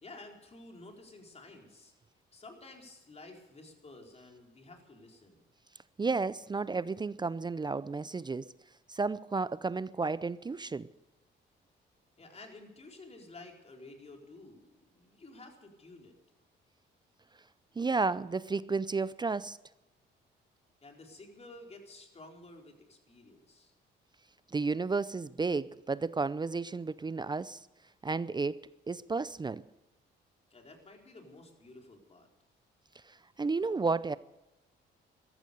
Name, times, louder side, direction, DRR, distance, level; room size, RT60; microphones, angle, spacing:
voice 1, 0.0-1.9 2.3-5.4 12.2-16.1 20.8-23.7 30.5-32.3, left 2 dB, 30° left, 4.4 m, -52 dB
voice 2, 6.0-8.4 8.9-10.9 17.8-19.6 24.5-27.6 28.0-28.6 28.9-29.6 33.1-34.2, right 4 dB, 20° right, 0.5 m, -32 dB
14.5 x 14.0 x 6.8 m
cardioid pair, 90°, 20 cm